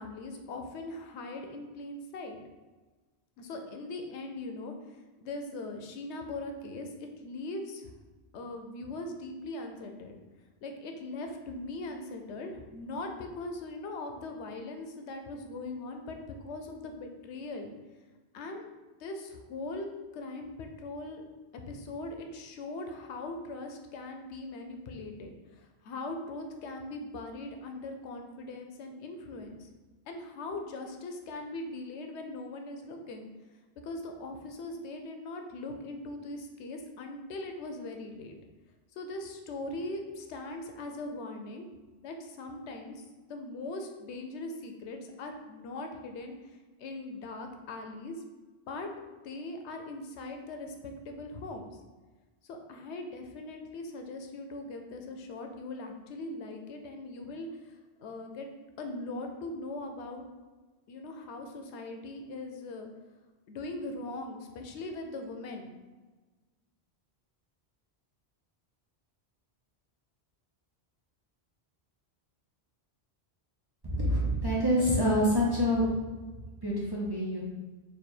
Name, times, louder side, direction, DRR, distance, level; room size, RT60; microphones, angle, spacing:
voice 1, 0.0-2.4 3.4-4.7 5.2-6.9 7.2-7.9 8.3-10.2 10.6-17.7 18.3-18.7 19.0-19.9 20.1-21.2 21.7-25.3 25.6-29.7 30.1-33.3 33.8-38.4 39.0-41.7 42.0-43.0 43.3-46.3 46.8-48.2 48.7-48.9 49.2-51.7 52.5-58.5 58.8-60.2 60.9-62.9 63.5-65.7, left 2 dB, 90° left, 4 dB, 0.9 m, -40 dB
voice 2, 73.9-75.9 76.6-77.4, equal, 30° right, -6 dB, 0.6 m, -26 dB
3.3 x 2.4 x 4.3 m, 1.3 s
omnidirectional pair, 1.1 m